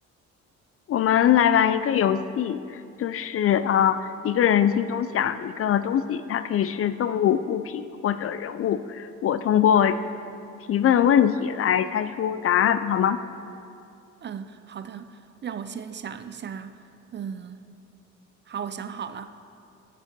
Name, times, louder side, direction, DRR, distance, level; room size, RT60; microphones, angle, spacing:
voice 1, 0.9-10.0 10.7-13.2, left 9 dB, 50° left, 13 dB, 0.4 m, -22 dB
voice 2, 14.2-16.8 17.1-17.7 18.5-19.3, right 7 dB, 35° right, 11 dB, 0.4 m, -36 dB
9.7 x 6.5 x 5.2 m, 2.5 s
cardioid pair, 90°, 30 cm